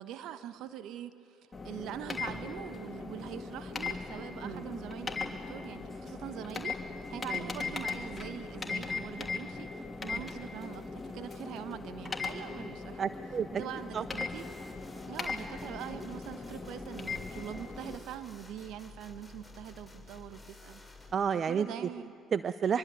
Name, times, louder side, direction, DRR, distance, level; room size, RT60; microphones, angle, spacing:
voice 1, 0.0-6.8 7.1-13.0 13.6-14.4 15.1-20.8 21.5-22.1, right 11 dB, 70° right, 11 dB, 1.1 m, -43 dB
sound 1, 1.5-18.0, left 4 dB, 25° left, 3.1 m, -39 dB
voice 2, 13.0-13.6 13.9-14.0 21.1-21.9 22.3-22.8, right 7 dB, 50° right, 13 dB, 0.6 m, -31 dB
sound 2, 14.3-21.1, left 3 dB, 5° left, 5.7 m, -52 dB
24.5 x 23.5 x 8.3 m, 2.3 s
hypercardioid pair, 50°, 0 cm